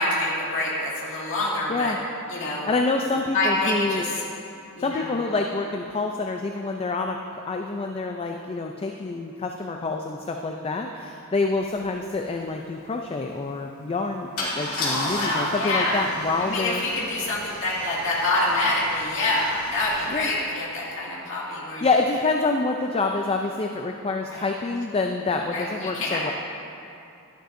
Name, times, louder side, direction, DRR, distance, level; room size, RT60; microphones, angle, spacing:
voice 1, 0.0-1.9 2.3-2.6 3.3-4.1 4.8-5.1 14.8-16.0 16.4-21.8 24.3-24.4 25.5-26.3, left 2 dB, 60° left, -6 dB, 2.2 m, -26 dB
voice 2, 2.6-4.1 4.8-16.8 20.1-20.3 21.8-26.3, left 3 dB, 25° left, 3 dB, 0.4 m, -27 dB
Car / Engine starting / Idling, 11.7-11.8 12.1-12.4 14.4-20.1, left 2 dB, 85° left, 2.4 m, -35 dB
11.5 x 11.5 x 2.6 m, 2.7 s
head